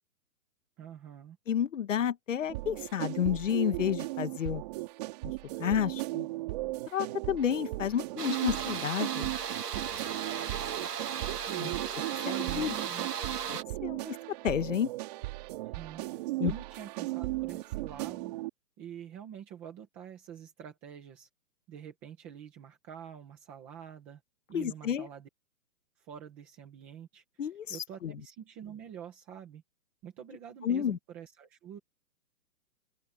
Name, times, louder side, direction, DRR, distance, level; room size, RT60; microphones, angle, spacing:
voice 1, 0.8-1.4 11.4-11.8 12.2-13.1 15.6-16.1 16.4-18.3 18.8-21.3 21.7-24.2 24.5-25.3 26.0-27.2 27.7-29.6 30.0-31.8, right 9 dB, 5° right, 0.7 m, -46 dB
voice 2, 1.5-4.6 5.6-6.3 6.9-9.3 11.6-11.7 12.6-12.7 13.5-14.2 14.4-14.9 16.4-16.5 24.5-25.1 27.4-28.1 30.6-31.0, left 9 dB, 55° left, 1.5 m, -30 dB
sound 1, 2.5-18.5, right 20 dB, 25° right, 3.5 m, -37 dB
sound 2, 8.2-13.6, right 8 dB, 85° right, 1.8 m, -36 dB
open air
hypercardioid pair, 170°, 46 cm